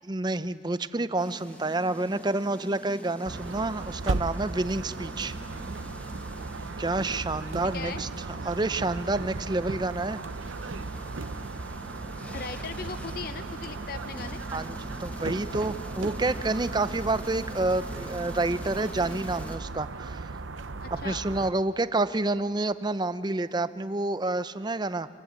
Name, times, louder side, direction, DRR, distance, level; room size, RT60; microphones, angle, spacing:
voice 1, 0.1-5.4 6.8-8.1 8.4-10.2 14.5-20.3 21.0-25.1, right 2 dB, 20° right, 13 dB, 0.6 m, -29 dB
sound 1, 1.2-19.6, equal, 10° left, 1.4 m, -45 dB
sound 2, 3.2-21.5, right 3 dB, 90° right, 0.8 m, -36 dB
voice 2, 7.6-8.0 12.3-14.4 20.8-21.3, left 5 dB, 50° left, 10 dB, 0.6 m, -39 dB
26.0 x 26.0 x 8.1 m, 2.2 s
head